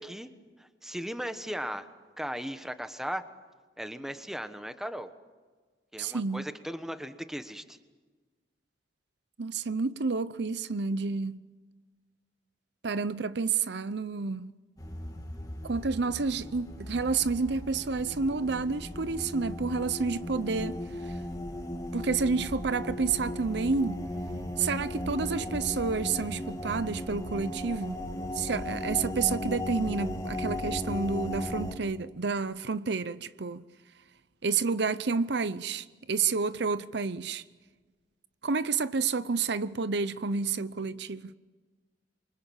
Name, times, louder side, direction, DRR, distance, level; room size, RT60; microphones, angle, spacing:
voice 1, 0.0-1.9 2.2-3.2 3.8-5.1 5.9-7.8, equal, 5° right, 1.2 m, -37 dB
voice 2, 6.0-6.4 9.4-11.4 12.8-14.5 15.6-21.1 21.9-24.0 24.6-28.0 28.3-33.6 34.4-37.4 38.4-41.3, right 4 dB, 70° right, 0.7 m, -30 dB
sound 1, 14.8-31.7, left 1 dB, 20° left, 2.5 m, -36 dB
27.5 x 24.5 x 7.3 m
head